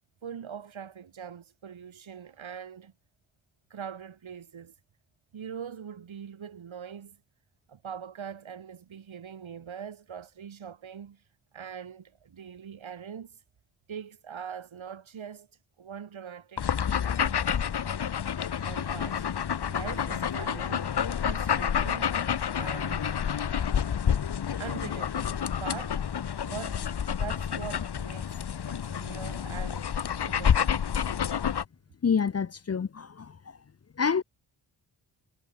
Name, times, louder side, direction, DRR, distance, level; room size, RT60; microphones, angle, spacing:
voice 1, 0.2-2.9 3.7-4.7 5.3-7.2 7.7-11.2 11.5-13.4 13.9-15.5 15.8-16.7 18.6-19.3 19.7-20.9 21.2-22.2 22.5-23.2 24.6-26.0 26.4-26.8 27.1-28.3 28.6-29.9 30.2-30.9, right 7 dB, 90° right, 4.5 m, -42 dB
sound 1, 16.6-31.6, left 8 dB, 55° left, 1.2 m, -29 dB
voice 2, 32.0-33.4 34.0-34.2, left 6 dB, 35° left, 0.6 m, -27 dB
wide cardioid pair, 100°, 46 cm